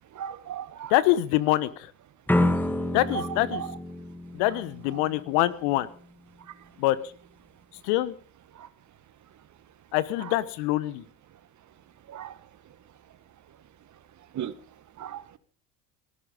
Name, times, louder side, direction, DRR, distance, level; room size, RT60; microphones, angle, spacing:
voice 1, 0.2-0.9 2.4-2.5 3.1-3.7 8.6-8.7 12.1-12.4 14.3-14.5 15.0-15.4, right 9 dB, 45° right, 1.8 m, -36 dB
voice 2, 0.9-1.9 2.9-3.6 4.3-5.9 6.8-7.0 7.8-8.1 9.9-11.0, left 15 dB, 70° left, 1.3 m, -25 dB
sound 1, 2.3-5.2, left 1 dB, 5° left, 1.7 m, -28 dB
18.0 x 13.5 x 5.3 m
hypercardioid pair, 70°, 41 cm